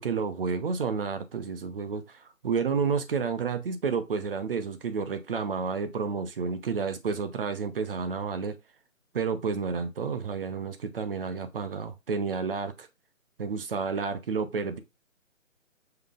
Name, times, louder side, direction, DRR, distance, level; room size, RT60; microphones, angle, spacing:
voice 1, 0.0-8.6 9.1-12.9 13.4-14.8, right 5 dB, 45° right, 0.8 m, -30 dB
5.6 x 3.8 x 2.4 m
figure-of-eight pair, 150°, 41 cm